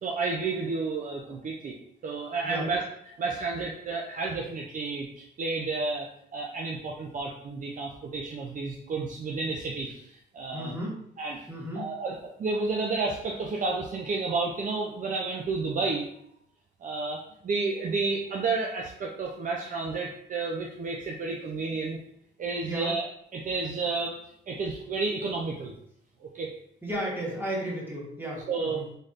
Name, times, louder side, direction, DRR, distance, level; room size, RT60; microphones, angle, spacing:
voice 1, 0.0-1.7 2.0-2.8 3.2-10.7 11.2-11.4 11.8-16.0 16.8-22.0 22.4-23.0 23.3-24.2 24.5-25.7 26.2-26.5 28.5-28.8, right 3 dB, 40° right, 0 dB, 0.5 m, -31 dB
voice 2, 10.5-11.0 11.5-11.9 22.6-22.9 26.8-28.8, right 1 dB, 10° right, -5 dB, 1.5 m, -33 dB
4.0 x 3.2 x 2.5 m, 0.71 s
cardioid pair, 90°, 20 cm